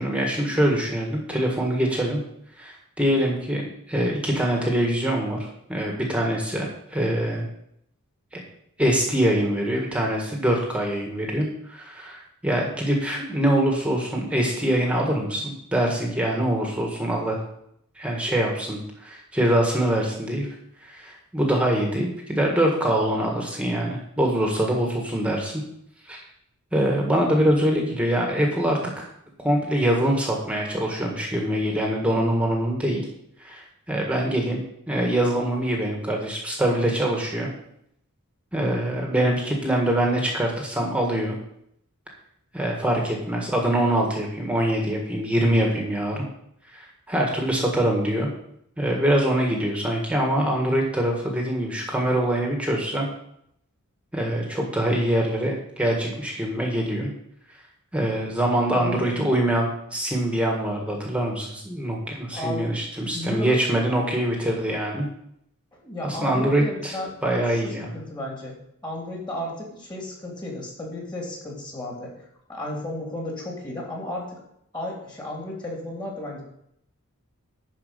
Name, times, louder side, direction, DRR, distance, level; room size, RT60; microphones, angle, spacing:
voice 1, 0.0-2.2 2.6-5.4 5.7-7.5 8.3-8.4 8.8-17.4 18.0-20.5 20.8-25.6 26.0-26.2 26.7-29.1 29.4-33.0 33.4-37.5 38.5-41.4 42.5-46.2 46.7-48.3 48.8-53.1 54.1-57.1 57.9-65.0 66.0-66.9 67.2-67.9, right 1 dB, 5° right, 0 dB, 1.7 m, -24 dB
voice 2, 58.7-59.1 62.3-62.7 63.0-63.6 65.8-67.2 67.5-68.6 68.8-72.1 72.5-74.4 74.7-76.4, left 1 dB, 20° left, -2 dB, 3.2 m, -33 dB
11.5 x 4.9 x 6.7 m, 0.74 s
head